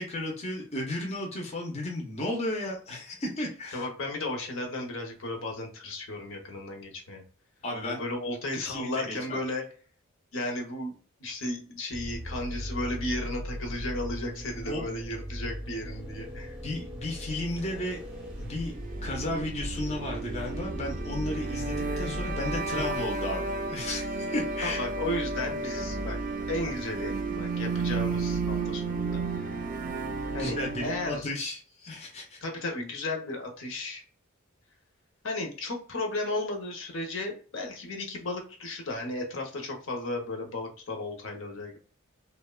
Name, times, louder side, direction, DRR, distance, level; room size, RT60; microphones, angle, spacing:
voice 1, 0.0-3.9 7.6-8.0 8.5-9.4 14.7-14.9 16.6-18.0 18.4-18.8 19.0-24.9 30.4-32.4, left 1 dB, 30° left, 0 dB, 0.5 m, -34 dB
voice 2, 3.7-7.2 7.9-9.7 10.3-10.9 11.2-16.6 24.6-26.2 26.5-29.5 30.3-31.3 32.4-34.0 35.2-41.8, left 2 dB, 65° left, 2 dB, 0.7 m, -34 dB
sound 1, 11.9-23.2, equal, 5° right, 0.6 m, -38 dB
sound 2, 18.3-31.3, right 3 dB, 40° right, 0.3 m, -33 dB
2.9 x 2.1 x 2.2 m, 0.41 s
head